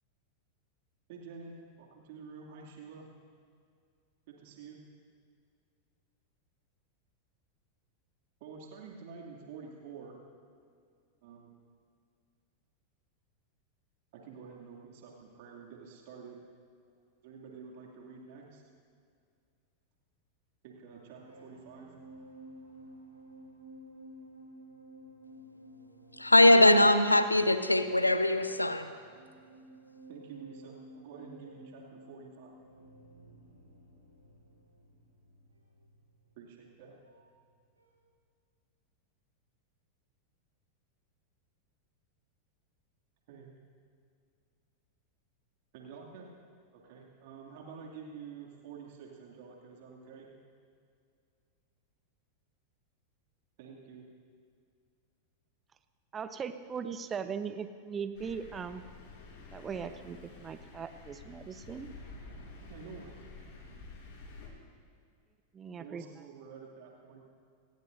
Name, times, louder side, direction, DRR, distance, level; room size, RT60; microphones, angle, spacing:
voice 1, 1.1-3.1 4.3-4.8 8.4-10.2 11.2-11.5 14.1-16.4 17.2-18.6 20.6-22.0 30.1-30.7 31.0-32.5 36.4-37.0 43.3-43.5 45.7-46.3 46.7-50.3 53.6-54.0 62.7-63.1 65.8-67.2, right 6 dB, 50° right, -1 dB, 2.5 m, -49 dB
sound 1, 20.9-37.5 37.8-38.1, right 1 dB, 85° right, 3.9 m, -54 dB
voice 2, 26.1-29.0, left 1 dB, 85° left, 11 dB, 0.9 m, -22 dB
voice 3, 56.1-58.8 59.5-61.9 65.5-66.2, right 6 dB, 20° right, 11 dB, 0.9 m, -39 dB
Thunder, 58.1-64.5, left 3 dB, 45° left, 4.9 m, -50 dB
27.0 x 19.0 x 2.6 m, 2.3 s
figure-of-eight pair, 90°, 0 cm